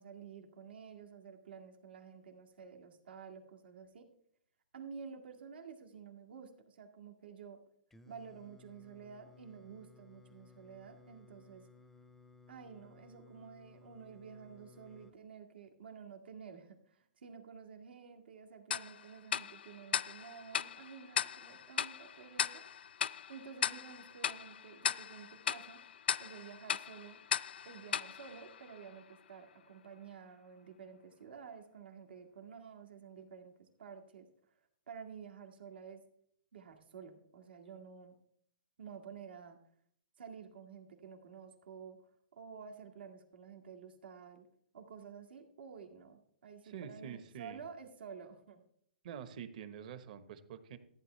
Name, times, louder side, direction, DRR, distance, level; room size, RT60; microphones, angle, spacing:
voice 1, 0.0-4.1 4.7-7.6 8.1-11.7 12.5-22.7 23.3-25.8 26.2-27.2 27.6-34.6 34.9-36.0 36.5-38.1 38.8-39.6 40.2-44.5 44.7-48.6, right 6 dB, 80° right, 3 dB, 2.1 m, -51 dB
Singing, 7.9-15.1, left 4 dB, 5° left, 0.5 m, -60 dB
Tick-tock, 18.7-29.2, left 8 dB, 85° left, 0.4 m, -38 dB
voice 2, 46.6-47.6 49.0-50.8, right 8 dB, 50° right, 10 dB, 1.3 m, -46 dB
14.5 x 9.7 x 3.4 m, 0.67 s
hypercardioid pair, 155°, 5 cm